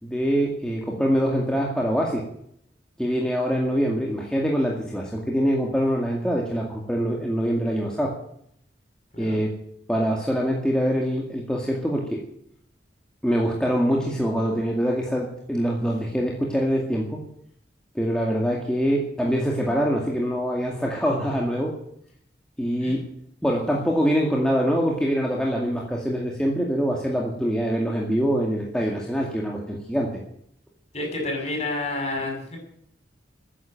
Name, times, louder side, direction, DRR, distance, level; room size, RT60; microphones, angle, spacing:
voice 1, 0.0-2.3 3.0-8.1 9.2-9.6 9.9-12.2 13.2-17.2 18.0-21.7 22.6-23.1 23.4-30.2, equal, 5° left, -2 dB, 2.2 m, -24 dB
voice 2, 30.9-32.6, left 2 dB, 35° left, 1 dB, 6.8 m, -29 dB
14.5 x 9.9 x 9.2 m, 0.70 s
head